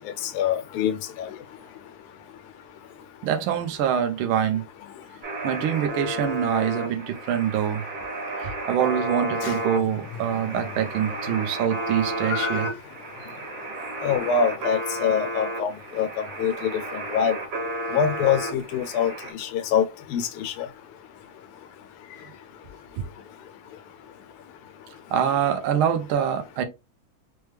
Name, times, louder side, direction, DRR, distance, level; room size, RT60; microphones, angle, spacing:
voice 1, 0.3-1.3 9.4-9.5 12.3-12.7 14.0-16.1 16.4-16.7 17.1-17.4 17.9-19.1 19.4-19.8 20.1-20.5, left 7 dB, 85° left, 1.6 m, -24 dB
voice 2, 3.2-4.6 5.4-7.8 8.4-12.7 23.0-23.1 25.1-26.6, right 9 dB, 75° right, 1.4 m, -25 dB
sound 1, 5.2-19.3, right 1 dB, 55° right, 2.0 m, -32 dB
4.5 x 2.2 x 3.2 m
omnidirectional pair, 2.4 m